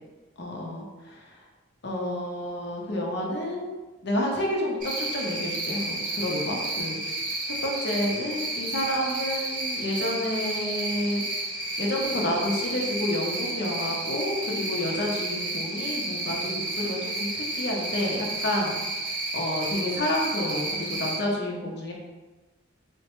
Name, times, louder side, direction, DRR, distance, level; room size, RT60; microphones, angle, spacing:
voice 1, 0.4-0.8 1.8-3.7 4.0-7.0 7.6-11.2 11.8-18.8 19.3-21.9, left 1 dB, 55° left, -1 dB, 0.6 m, -29 dB
Cricket, 4.8-21.2, right 2 dB, 40° right, 0.7 m, -31 dB
3.8 x 2.2 x 2.9 m, 1.2 s
head